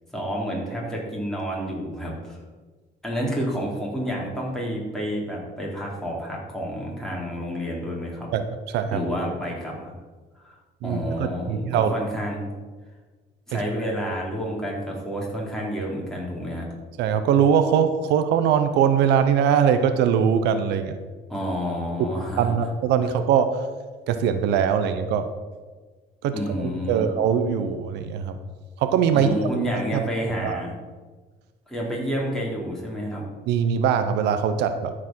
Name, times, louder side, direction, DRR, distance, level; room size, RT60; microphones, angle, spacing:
voice 1, 0.1-2.4 3.0-8.3 8.9-9.9 10.4-10.6 10.8-12.5 13.5-16.7 21.3-22.5 26.3-27.1 29.1-30.7 31.7-33.2, equal, 5° left, -3 dB, 3.6 m, -29 dB
voice 2, 10.8-11.9 13.5-13.6 17.0-21.0 22.4-23.6 24.1-25.3 26.2-28.4 28.8-29.3 29.7-30.0 30.4-30.6 33.5-34.9, right 8 dB, 85° right, 9 dB, 0.8 m, -22 dB
13.0 x 5.1 x 6.2 m, 1.3 s
cardioid pair, 110°, 17 cm